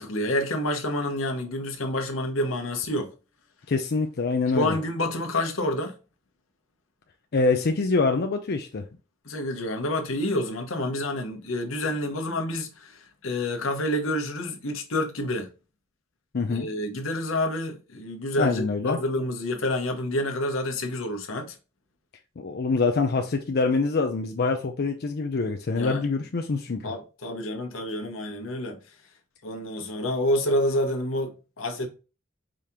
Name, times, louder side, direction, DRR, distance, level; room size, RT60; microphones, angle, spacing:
voice 1, 0.0-3.1 4.5-5.9 9.2-15.5 16.5-21.6 25.8-26.0 26.8-28.8 29.4-31.9, left 1 dB, 85° left, 1.0 m, -28 dB
voice 2, 3.7-4.8 7.3-8.8 16.3-16.7 18.4-19.0 22.4-26.8, left 4 dB, 50° left, 0.5 m, -25 dB
5.0 x 2.9 x 3.6 m
head